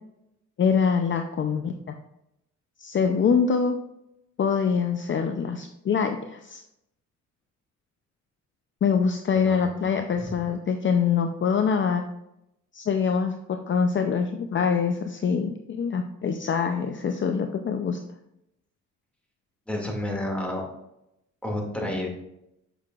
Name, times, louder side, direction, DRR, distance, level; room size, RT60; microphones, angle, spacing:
voice 1, 0.6-2.0 2.8-3.8 4.4-6.6 8.8-12.0 12.7-18.0, left 6 dB, 40° left, 6 dB, 0.6 m, -24 dB
voice 2, 9.4-9.9 10.2-10.3 19.7-20.6 21.4-22.1, left 1 dB, 5° left, -1 dB, 2.3 m, -30 dB
7.8 x 6.6 x 2.4 m, 0.83 s
cardioid pair, 90°, 30 cm